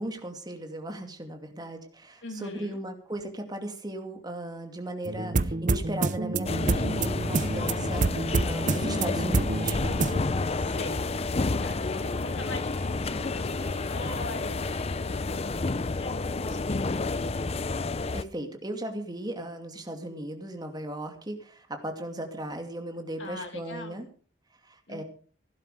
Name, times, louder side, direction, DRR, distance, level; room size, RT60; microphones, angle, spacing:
voice 1, 0.0-9.8 18.1-24.1 24.7-25.0, right 1 dB, 20° right, 5 dB, 2.6 m, -37 dB
voice 2, 2.2-2.8 10.5-11.2 11.6-14.6 15.0-15.7 16.0-17.4 23.2-24.0 24.9-25.0, left 2 dB, 85° left, 4 dB, 2.4 m, -41 dB
sound 1, 5.1-10.2, right 3 dB, 45° right, 0.7 m, -28 dB
sound 2, 6.4-18.2, left 3 dB, 35° left, 0.6 m, -30 dB
sound 3, 7.1-14.8, right 1 dB, 5° left, 7.4 m, -48 dB
16.5 x 11.5 x 5.0 m, 0.43 s
head